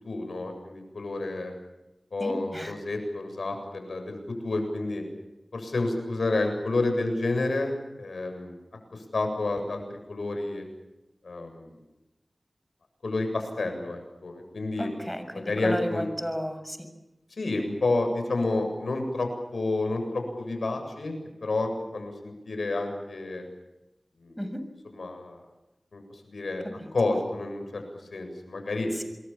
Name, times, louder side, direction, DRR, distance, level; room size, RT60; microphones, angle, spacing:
voice 1, 0.0-1.5 2.1-4.2 4.4-5.0 5.5-8.6 8.9-10.6 11.2-11.7 13.0-14.9 15.3-16.1 17.4-21.1 21.4-23.5 24.2-24.4 24.9-25.4 25.9-27.8 28.1-28.9, left 2 dB, 85° left, 5 dB, 7.7 m, -30 dB
voice 2, 2.2-2.7 14.8-16.9 24.4-24.6 26.8-26.9, equal, ahead, 8 dB, 6.9 m, -33 dB
27.5 x 22.5 x 7.4 m, 0.95 s
cardioid pair, 40°, 0 cm